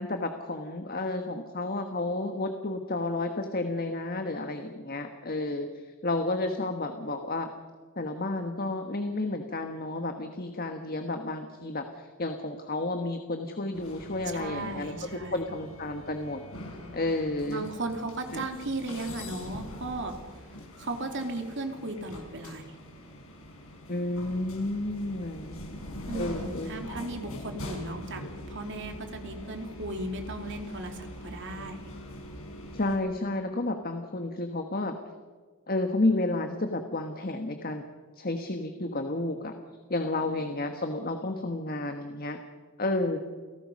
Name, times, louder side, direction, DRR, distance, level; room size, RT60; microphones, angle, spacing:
voice 1, 0.0-7.5 8.0-16.4 16.9-17.7 18.3-18.4 23.9-25.6 26.1-26.8 27.2-27.5 32.7-34.9 35.7-37.8 38.2-39.5 39.9-42.4 42.8-43.2, left 2 dB, 40° left, 6 dB, 1.4 m, -31 dB
sound 1, 13.7-33.0, left 1 dB, 65° left, 5.5 m, -43 dB
voice 2, 14.3-15.5 17.5-20.2 20.8-22.7 26.1-28.2 28.5-31.9, right 2 dB, 55° right, 4 dB, 2.8 m, -36 dB
29.5 x 18.0 x 5.4 m, 1.5 s
head